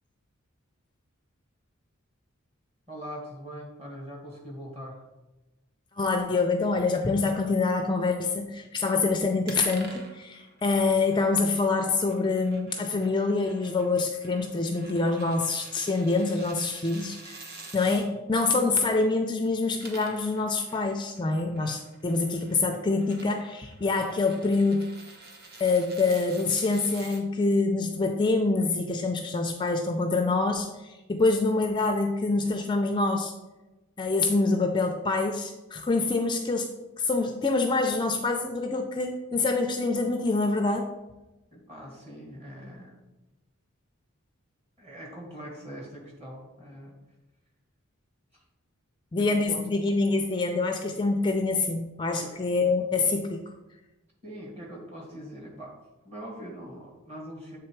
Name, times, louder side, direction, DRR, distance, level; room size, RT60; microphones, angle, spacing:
voice 1, 2.9-5.1 41.5-43.0 44.8-47.0 48.3-48.4 49.2-49.6 52.2-52.4 54.2-55.7 56.0-57.6, equal, 30° right, -2 dB, 1.9 m, -42 dB
voice 2, 6.0-24.9 25.6-33.3 34.0-36.7 37.0-40.9 49.1-53.4, left 3 dB, 20° left, 5 dB, 0.4 m, -26 dB
sound 1, 9.5-18.1 19.6-27.2, right 2 dB, 50° right, 1.1 m, -48 dB
7.7 x 3.5 x 4.6 m, 1.0 s
head